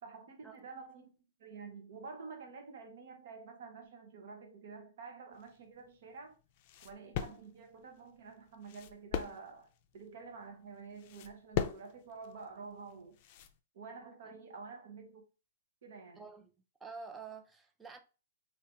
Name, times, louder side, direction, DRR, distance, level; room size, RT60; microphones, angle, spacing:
voice 1, 0.0-1.1 1.4-6.4 6.8-13.2 13.7-15.2 15.8-16.2, right 4 dB, 65° right, 1.1 m, -49 dB
sound 1, 5.3-13.6, left 9 dB, 45° left, 0.4 m, -42 dB
voice 2, 16.1-16.5 16.8-18.0, right 5 dB, 10° right, 0.5 m, -48 dB
3.4 x 2.8 x 2.9 m
hypercardioid pair, 135°, 0 cm